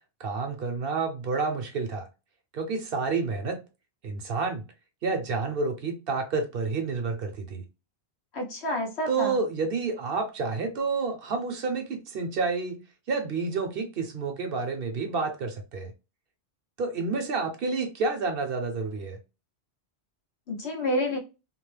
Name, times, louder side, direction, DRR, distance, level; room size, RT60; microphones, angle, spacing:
voice 1, 0.2-2.1 2.5-3.6 4.0-4.7 5.0-7.6 9.1-12.8 13.1-15.9 16.8-19.2, right 4 dB, 60° right, 0.8 m, -29 dB
voice 2, 8.3-9.4 20.5-21.2, left 1 dB, 75° left, 1.2 m, -29 dB
2.9 x 2.0 x 3.1 m
omnidirectional pair, 1.1 m